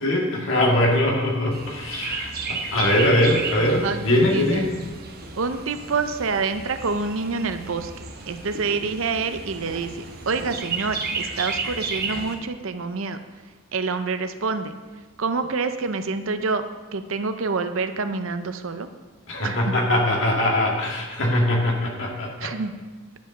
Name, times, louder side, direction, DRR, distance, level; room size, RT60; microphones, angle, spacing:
voice 1, 0.0-4.7 19.3-22.5, left 1 dB, 60° left, -1 dB, 2.0 m, -22 dB
Chirp tweet, 1.5-12.3, right 4 dB, 45° right, 1.1 m, -33 dB
voice 2, 3.8-4.6 5.3-13.2 13.7-14.7 15.2-16.6 16.9-18.9 19.4-19.7 22.4-22.7, right 4 dB, 65° right, 9 dB, 0.6 m, -27 dB
10.5 x 5.1 x 6.6 m, 1.3 s
head